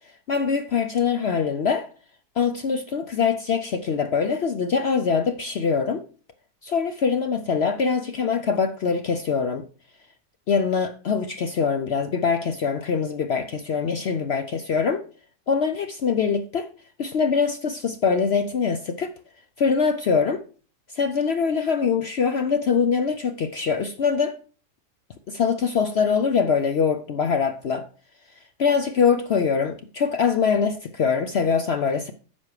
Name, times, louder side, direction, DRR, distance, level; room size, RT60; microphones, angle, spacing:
voice 1, 0.3-1.9 2.4-6.0 6.6-9.7 10.5-15.0 15.5-16.7 17.0-19.1 19.6-20.4 20.9-24.3 25.3-27.9 28.6-32.1, left 6 dB, 65° left, 0.6 m, -23 dB
9.8 x 6.2 x 4.8 m
omnidirectional pair, 1.8 m